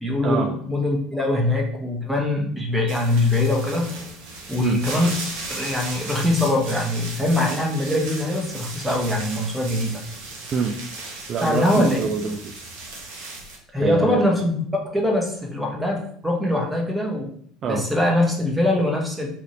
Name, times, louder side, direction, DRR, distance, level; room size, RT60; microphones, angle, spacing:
voice 1, 0.0-4.0 4.5-9.9 11.4-12.0 13.7-14.6 14.9-17.3 17.7-19.3, left 1 dB, 10° right, 0 dB, 0.8 m, -22 dB
sound 1, 2.9-13.6, right 3 dB, 70° right, 0.8 m, -36 dB
voice 2, 10.5-12.5 13.8-14.3 17.6-17.8, right 5 dB, 45° right, 3 dB, 0.3 m, -26 dB
2.8 x 2.5 x 2.8 m, 0.62 s
hypercardioid pair, 70°, 0 cm